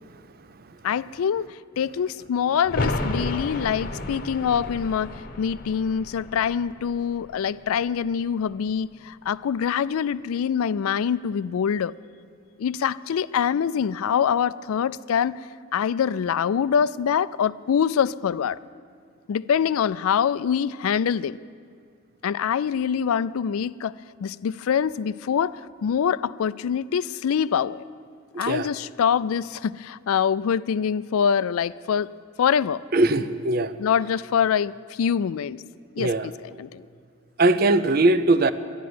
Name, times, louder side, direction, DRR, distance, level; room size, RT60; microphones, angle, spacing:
voice 1, 0.8-11.9 12.6-15.4 15.7-18.6 19.3-21.4 22.2-23.9 24.2-27.8 28.4-32.1 32.4-32.8 33.8-35.6 36.0-36.9, left 7 dB, 80° left, 18 dB, 0.3 m, -24 dB
sound 1, 2.6-8.2 8.5-8.6, left 2 dB, 40° left, 0.9 m, -32 dB
voice 2, 28.3-28.7 32.9-33.7 36.0-36.3 37.4-38.5, right 2 dB, 45° right, 13 dB, 0.5 m, -20 dB
12.5 x 11.0 x 9.4 m, 2.1 s
head